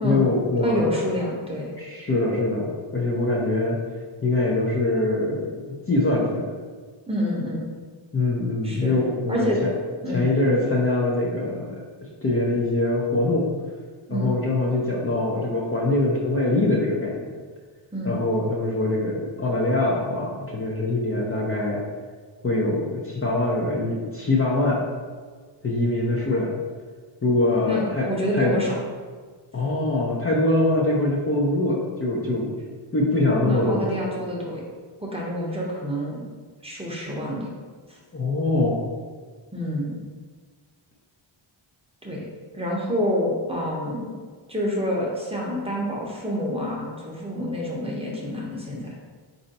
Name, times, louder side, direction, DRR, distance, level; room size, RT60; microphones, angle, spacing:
voice 1, 0.0-0.9 1.8-3.8 4.2-6.5 8.1-9.7 10.1-11.8 12.2-13.5 14.1-17.3 18.0-21.8 22.4-24.8 25.6-26.5 27.2-28.1 28.3-28.5 29.5-32.5 32.9-33.8 38.1-38.8, left 2 dB, 30° left, -4 dB, 0.5 m, -23 dB
voice 2, 0.6-1.7 7.1-7.7 8.6-9.0 9.3-9.6 10.0-10.3 14.1-14.3 17.9-18.2 27.6-28.8 33.3-34.6 35.0-36.3 36.6-37.5 37.9-38.0 39.5-39.9 42.0-42.2 42.5-44.1 44.5-49.0, equal, 10° right, -4 dB, 0.7 m, -27 dB
4.3 x 2.7 x 4.0 m, 1.5 s
wide cardioid pair, 140°, 48 cm